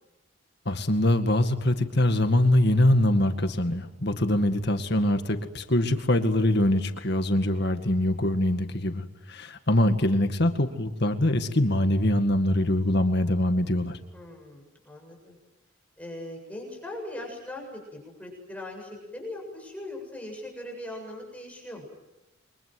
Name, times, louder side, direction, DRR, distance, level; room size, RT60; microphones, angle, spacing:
voice 1, 0.7-14.0, left 1 dB, 50° left, 7 dB, 2.1 m, -23 dB
voice 2, 14.1-15.4 16.0-21.8, left 1 dB, 5° left, 0 dB, 7.6 m, -40 dB
29.5 x 24.0 x 7.8 m, 1.0 s
head